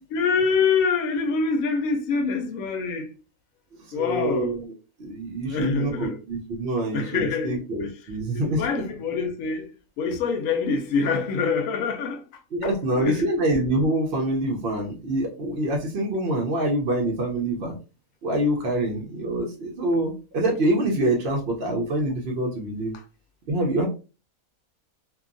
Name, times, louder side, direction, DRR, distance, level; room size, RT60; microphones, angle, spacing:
voice 1, 0.1-3.2 3.9-4.6 5.4-6.2 6.9-7.9 8.3-12.2 12.6-13.2 22.9-23.0, left 5 dB, 70° left, 0.9 m, -25 dB
voice 2, 3.9-4.7 5.0-8.6 12.5-17.7 18.2-22.9 23.5-23.9, right 1 dB, 55° right, 0.7 m, -25 dB
2.7 x 2.3 x 2.5 m
omnidirectional pair, 1.6 m